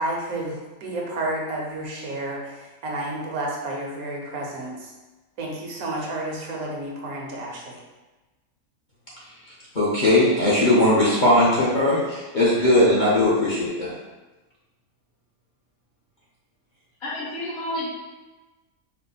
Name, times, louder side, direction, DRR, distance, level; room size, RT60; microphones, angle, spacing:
voice 1, 0.0-4.9 5.4-7.8, right 1 dB, 75° right, -1 dB, 1.2 m, -31 dB
voice 2, 9.7-13.9, left 1 dB, 40° left, -8 dB, 0.7 m, -19 dB
voice 3, 17.0-17.8, left 1 dB, 70° left, -9 dB, 1.8 m, -30 dB
4.5 x 2.0 x 3.9 m, 1.2 s
omnidirectional pair, 1.6 m